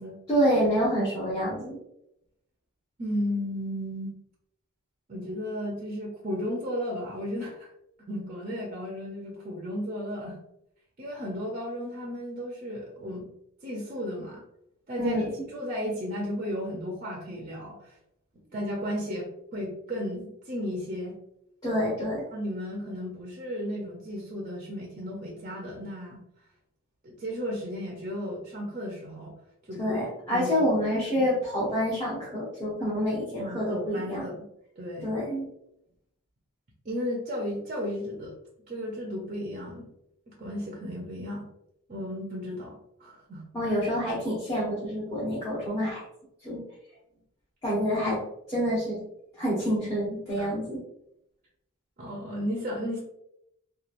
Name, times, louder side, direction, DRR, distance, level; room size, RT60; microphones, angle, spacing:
voice 1, 0.3-1.8 15.0-15.3 21.6-22.2 29.8-34.2 35.0-35.5 43.5-46.1 46.4-46.7 47.6-48.2 48.5-49.0 49.4-50.8, equal, 15° left, -10 dB, 0.8 m, -27 dB
voice 2, 3.0-4.1 5.1-7.7 8.1-10.4 11.0-13.3 13.6-14.4 14.9-18.0 18.5-21.1 22.3-26.2 27.0-29.3 29.7-30.0 30.3-30.8 31.1-31.3 33.4-34.5 34.8-35.1 36.8-38.3 38.7-39.9 40.3-41.5 41.9-43.7 50.4-50.5 52.0-53.0, equal, 35° right, -2 dB, 0.5 m, -34 dB
2.9 x 2.3 x 2.4 m, 0.79 s
head